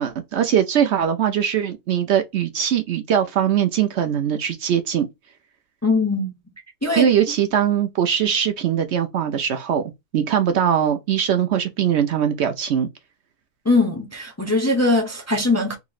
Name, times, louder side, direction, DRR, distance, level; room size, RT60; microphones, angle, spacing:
voice 1, 0.0-5.1 7.0-9.8 10.1-12.9, right 9 dB, 65° right, 0.8 m, -21 dB
voice 2, 5.8-6.3 6.8-7.1 13.6-15.7, left 2 dB, 15° left, 0.6 m, -20 dB
3.7 x 3.0 x 2.4 m
omnidirectional pair, 1.4 m